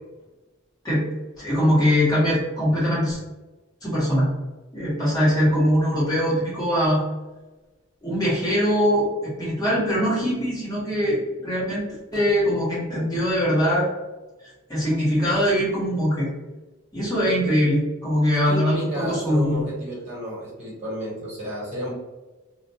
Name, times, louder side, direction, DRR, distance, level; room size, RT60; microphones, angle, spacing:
voice 1, 1.4-3.2 3.8-4.3 4.7-7.0 8.0-11.8 12.1-13.9 14.7-16.3 16.9-19.6, equal, 20° left, -8 dB, 1.1 m, -22 dB
voice 2, 18.3-22.0, right 1 dB, 30° right, -6 dB, 1.0 m, -31 dB
2.5 x 2.1 x 2.7 m, 1.1 s
head